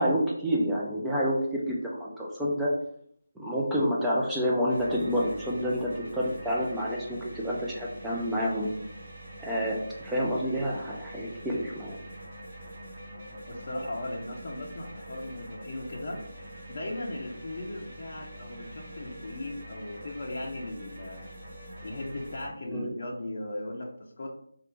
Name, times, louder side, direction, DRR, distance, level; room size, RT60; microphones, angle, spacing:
voice 1, 0.0-2.7 3.4-8.7 9.4-12.0 22.7-22.9, equal, 5° right, -6 dB, 0.5 m, -28 dB
sound 1, 4.7-22.5, right 1 dB, 35° right, 1.3 m, -44 dB
voice 2, 13.5-21.3 21.8-24.4, left 1 dB, 45° left, -1 dB, 0.6 m, -37 dB
3.2 x 2.5 x 3.1 m, 0.67 s
figure-of-eight pair, 160°, 0 cm